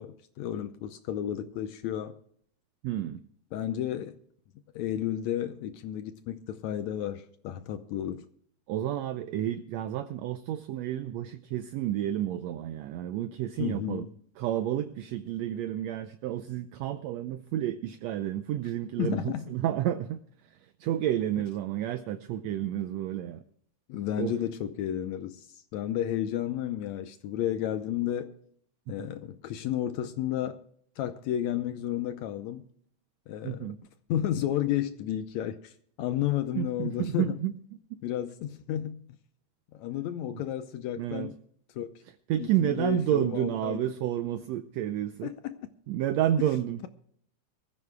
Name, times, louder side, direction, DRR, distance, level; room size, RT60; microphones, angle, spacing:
voice 1, 0.0-2.1 3.5-4.2 4.8-8.3 13.6-14.1 19.0-19.5 23.9-28.3 28.9-30.6 31.0-32.7 33.3-33.7 34.1-35.7 36.0-37.4 38.0-39.0 39.7-41.3 41.8-42.0 42.4-43.8 45.2-45.6, left 11 dB, 75° left, 1.9 m, -32 dB
voice 2, 2.8-3.2 8.7-14.1 14.4-20.2 20.5-23.4 24.2-24.3 28.9-29.1 33.4-33.8 36.5-37.5 37.9-38.0 40.3-40.4 41.0-41.3 42.3-45.3 45.9-46.9, right 11 dB, 75° right, 1.7 m, -30 dB
23.5 x 14.5 x 2.2 m
omnidirectional pair, 3.5 m